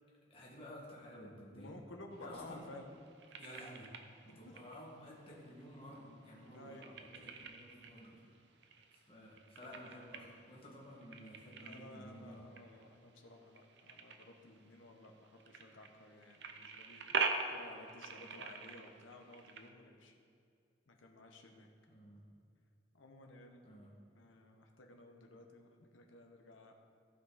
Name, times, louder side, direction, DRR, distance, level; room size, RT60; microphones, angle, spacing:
voice 1, 0.3-1.7 2.2-2.7 3.4-3.9 4.2-8.2 9.1-12.4 21.9-22.2 23.6-23.9, equal, 30° left, -4 dB, 1.8 m, -53 dB
voice 2, 1.5-2.9 4.3-4.7 6.5-6.8 11.6-17.1 17.5-20.1 20.9-21.7 22.9-23.6 24.1-26.7, left 2 dB, 85° left, 3 dB, 1.1 m, -55 dB
sound 1, 2.1-19.7, right 5 dB, 65° right, 0.7 m, -45 dB
15.5 x 5.4 x 4.1 m, 2.4 s
head